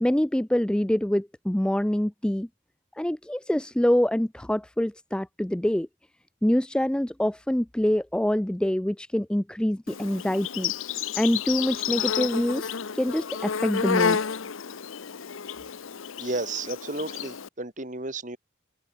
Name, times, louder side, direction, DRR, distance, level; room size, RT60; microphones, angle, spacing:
voice 1, 0.0-2.5 3.0-5.9 6.4-10.7 11.2-14.2, left 1 dB, 5° left, 0.3 m, -25 dB
Insect, 9.9-17.5, left 7 dB, 90° left, 0.8 m, -30 dB
voice 2, 16.2-18.4, right 2 dB, 40° right, 2.6 m, -32 dB
head